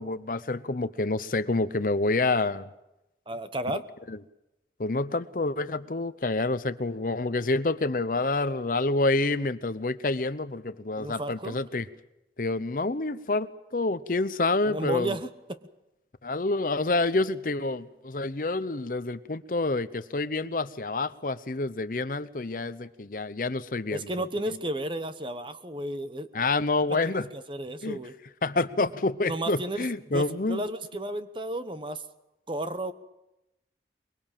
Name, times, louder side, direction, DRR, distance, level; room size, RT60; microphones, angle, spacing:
voice 1, 0.0-2.7 4.1-4.2 4.8-11.9 12.4-15.2 16.2-24.1 26.3-27.3 27.8-28.0 28.4-30.6, left 2 dB, 50° left, 0.8 m, -28 dB
voice 2, 3.3-3.8 11.0-11.6 14.6-15.6 23.9-26.3 26.9-28.2 29.2-32.0 32.5-32.9, right 1 dB, 30° right, 1.1 m, -33 dB
23.0 x 22.5 x 7.4 m
head